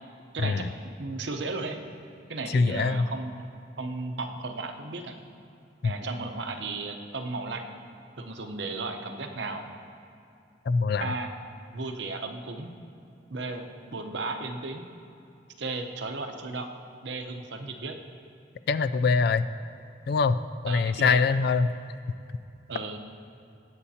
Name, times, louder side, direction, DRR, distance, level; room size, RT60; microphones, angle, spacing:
voice 1, 0.3-1.8 2.3-3.5 3.8-5.2 5.8-7.7 8.2-9.7 11.0-11.3 11.7-12.7 13.3-13.7 13.9-14.9 15.6-16.7 17.0-18.0 20.7-21.2 22.7-23.0, right 3 dB, 70° right, 5 dB, 0.8 m, -35 dB
voice 2, 2.5-3.1 5.8-5.9 10.7-11.1 18.7-19.5 20.1-20.4 20.6-21.7, left 4 dB, 55° left, 13 dB, 0.3 m, -23 dB
20.0 x 8.2 x 2.8 m, 2.6 s
head